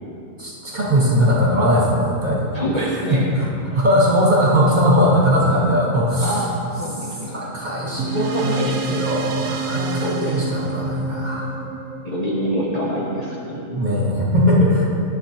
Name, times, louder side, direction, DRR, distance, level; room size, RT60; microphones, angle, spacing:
voice 1, 0.4-3.5 3.7-6.4 7.3-11.5 13.7-14.8, equal, 30° right, -6 dB, 1.7 m, -19 dB
voice 2, 2.5-3.2 6.2-6.5 6.8-7.4 8.2-8.7 9.6-10.4 12.0-13.8, equal, 35° left, -5 dB, 0.8 m, -26 dB
sound 1, 8.0-12.8, right 4 dB, 65° right, 0.9 m, -27 dB
11.5 x 8.2 x 2.9 m, 2.7 s
omnidirectional pair, 1.5 m